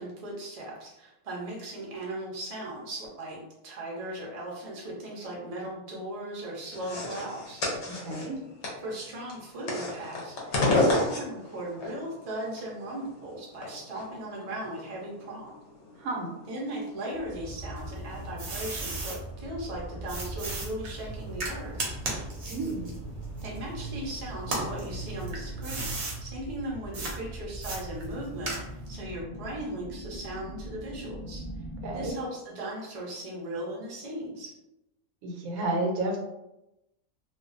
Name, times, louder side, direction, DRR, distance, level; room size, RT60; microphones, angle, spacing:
voice 1, 0.0-7.6 8.8-15.5 16.5-21.8 23.4-28.6 28.9-31.5 31.9-34.6, right 1 dB, 45° right, -3 dB, 0.5 m, -38 dB
sound 1, 6.7-25.7, left 2 dB, 60° left, 0.9 m, -35 dB
voice 2, 8.0-8.4 16.0-16.3 22.5-23.0 31.8-32.2 35.2-36.2, right 2 dB, 85° right, 1 dB, 1.1 m, -31 dB
sound 2, 17.1-32.1, right 1 dB, ahead, 0.6 m, -40 dB
sound 3, 17.8-19.2 20.1-24.0 24.4-26.2 26.9-27.2 27.6-28.9, right 2 dB, 60° right, 0.8 m, -36 dB
2.5 x 2.2 x 2.4 m, 0.92 s
omnidirectional pair, 1.5 m